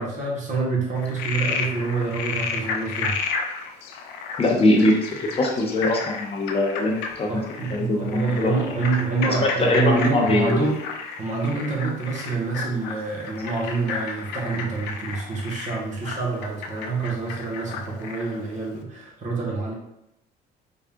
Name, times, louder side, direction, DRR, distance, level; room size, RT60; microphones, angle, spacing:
voice 1, 0.0-3.2 7.3-10.8 11.2-19.7, right 4 dB, 45° right, -3 dB, 1.2 m, -27 dB
Frog, 0.9-18.4, left 5 dB, 90° left, 0.5 m, -32 dB
voice 2, 4.4-7.3 7.7-8.6 9.2-10.7, left 2 dB, 35° left, 0 dB, 0.7 m, -22 dB
3.8 x 2.3 x 3.5 m, 0.83 s
cardioid pair, 110°, 17 cm